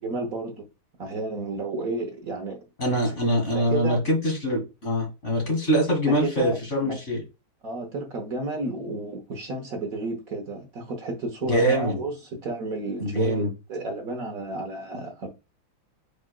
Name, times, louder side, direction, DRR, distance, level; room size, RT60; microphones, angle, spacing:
voice 1, 0.0-0.6 1.0-2.6 3.5-4.0 6.1-7.0 7.6-15.3, right 2 dB, 55° right, 1.0 m, -32 dB
voice 2, 2.8-7.2 11.5-12.0 13.0-13.5, equal, 35° left, 2.1 m, -24 dB
5.0 x 4.2 x 2.2 m
omnidirectional pair, 2.4 m